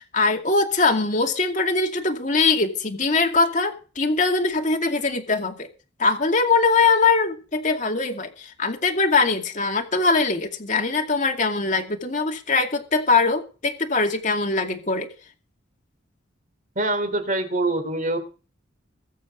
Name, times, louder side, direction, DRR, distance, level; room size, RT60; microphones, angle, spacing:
voice 1, 0.0-5.7 6.0-15.1, left 4 dB, 40° left, 3 dB, 2.4 m, -22 dB
voice 2, 16.7-18.2, right 2 dB, 40° right, 8 dB, 3.2 m, -24 dB
21.0 x 7.8 x 5.2 m, 0.35 s
head